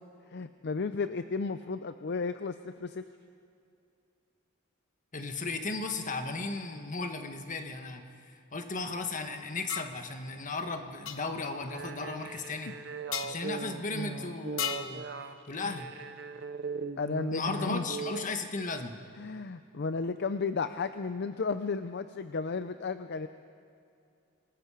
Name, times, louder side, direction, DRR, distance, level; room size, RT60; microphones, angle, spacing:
voice 1, 0.3-3.1 12.7-12.8 15.6-15.8 17.0-17.8 19.2-23.3, left 4 dB, 55° left, 10 dB, 0.5 m, -33 dB
voice 2, 5.1-8.0 8.5-12.7 13.2-15.1 15.5-15.9 17.3-19.0, left 3 dB, 40° left, 6 dB, 1.4 m, -35 dB
sound 1, 9.7-10.0 11.0-11.2 13.1-13.3 14.6-15.0, left 9 dB, 80° left, 0.9 m, -34 dB
sound 2, 11.6-18.3, right 4 dB, 60° right, 0.8 m, -39 dB
27.5 x 19.5 x 4.9 m, 2.4 s
head